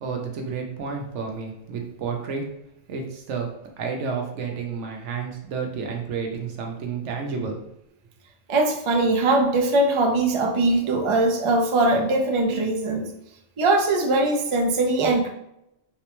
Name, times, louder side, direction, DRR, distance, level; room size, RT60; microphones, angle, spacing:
voice 1, 0.0-2.5 2.9-3.5 3.8-7.6, right 5 dB, 80° right, 2 dB, 1.0 m, -30 dB
voice 2, 8.5-13.1 13.6-15.3, right 2 dB, 55° right, 1 dB, 0.3 m, -21 dB
3.6 x 2.1 x 2.9 m, 0.83 s
omnidirectional pair, 1.2 m